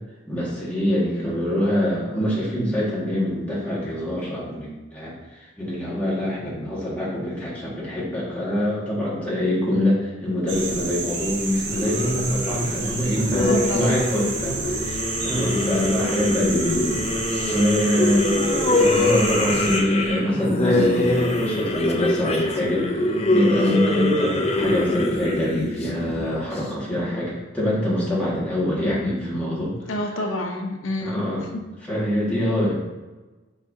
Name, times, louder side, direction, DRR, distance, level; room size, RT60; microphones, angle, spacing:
voice 1, 0.3-16.9 17.5-18.5 18.8-29.7 31.0-31.5 31.9-32.7, left 1 dB, 10° left, -8 dB, 1.8 m, -24 dB
sound 1, 10.5-19.8, right 3 dB, 65° right, 1.4 m, -30 dB
sound 2, 11.7-26.6, left 1 dB, 30° left, 0.6 m, -24 dB
voice 2, 13.4-14.0 15.5-15.7 18.1-18.3 29.9-31.3 31.5-31.6, left 2 dB, 90° left, 2 dB, 0.8 m, -29 dB
7.8 x 4.5 x 2.8 m, 1.2 s
head